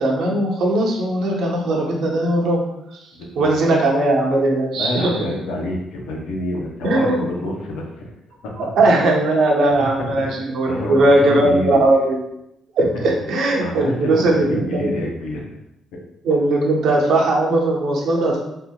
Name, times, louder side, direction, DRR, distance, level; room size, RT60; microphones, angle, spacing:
voice 1, 0.0-2.6 3.4-5.2 6.8-7.3 8.6-12.2 12.8-14.9 16.2-18.4, right 2 dB, 75° right, -1 dB, 0.8 m, -18 dB
voice 2, 3.1-3.5 4.7-8.1 10.6-11.8 13.6-15.4, left 1 dB, 85° left, -1 dB, 0.7 m, -27 dB
3.6 x 2.8 x 2.3 m, 0.84 s
cardioid pair, 85°, 0 cm